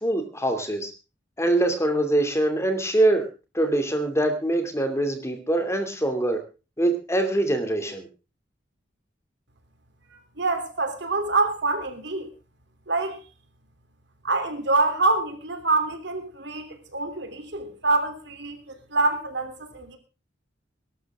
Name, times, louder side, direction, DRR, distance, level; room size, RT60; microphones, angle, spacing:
voice 1, 0.0-0.9 1.4-3.3 3.5-6.4 6.8-8.1, right 1 dB, 15° left, 2.6 m, -23 dB
voice 2, 10.4-12.3 12.9-13.2 14.2-16.7 16.9-20.0, right 3 dB, 65° right, 3.3 m, -25 dB
21.0 x 12.5 x 3.7 m
head